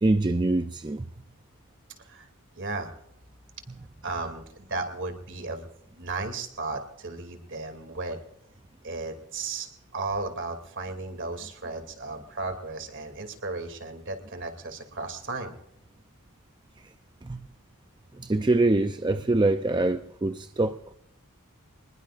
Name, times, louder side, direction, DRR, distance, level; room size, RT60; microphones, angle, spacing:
voice 1, 0.0-1.1 17.2-17.4 18.2-20.8, right 2 dB, 20° right, 0.5 m, -24 dB
voice 2, 2.6-2.9 4.0-5.7 6.0-8.2 8.8-15.5, right 3 dB, 55° right, 2.6 m, -35 dB
26.0 x 20.5 x 2.5 m
head